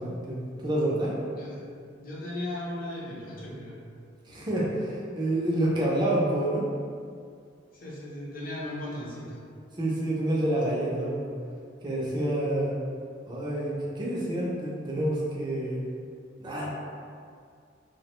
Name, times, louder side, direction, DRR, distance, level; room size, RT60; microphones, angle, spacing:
voice 1, 0.0-1.1 4.2-6.7 9.8-11.3 11.8-12.8 13.3-15.8 16.4-16.7, right 1 dB, 25° right, -5 dB, 0.4 m, -28 dB
voice 2, 1.3-1.6 2.0-3.7 7.7-9.4, left 1 dB, 50° left, -6 dB, 0.6 m, -37 dB
2.5 x 2.0 x 2.9 m, 2.2 s
head